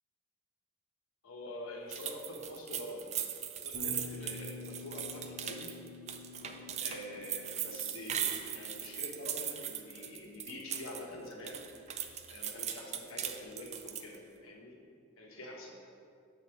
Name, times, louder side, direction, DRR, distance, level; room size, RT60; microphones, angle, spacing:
voice 1, 1.2-3.2 3.6-5.8 6.4-11.7 12.3-14.8 15.2-15.8, left 1 dB, 85° left, 0 dB, 1.1 m, -46 dB
sound 1, 1.9-11.0 11.3-14.2, right 9 dB, 35° right, 0.4 m, -39 dB
Bass guitar, 3.7-11.8, left 4 dB, 55° left, 0.9 m, -50 dB
6.9 x 4.1 x 6.1 m, 2.4 s
head